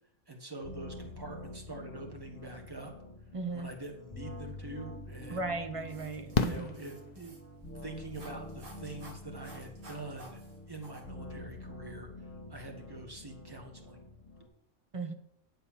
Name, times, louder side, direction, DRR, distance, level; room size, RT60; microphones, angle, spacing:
voice 1, 0.3-2.9 3.5-5.4 6.3-7.3 7.8-10.4 10.7-12.1 12.5-14.0, right 2 dB, 15° right, 2 dB, 1.4 m, -45 dB
sound 1, 0.6-14.5, left 1 dB, 10° left, 0.8 m, -47 dB
voice 2, 3.3-3.7 5.3-6.7 14.9-15.1, right 3 dB, 35° right, 7 dB, 0.5 m, -36 dB
Fireworks, 4.7-4.8 6.3-7.7 9.4-9.5 9.7-9.8, left 5 dB, 50° left, 0.5 m, -32 dB
sound 2, 5.9-11.0, right 1 dB, 80° right, 2.3 m, -54 dB
10.0 x 4.2 x 7.2 m, 0.73 s
omnidirectional pair, 1.5 m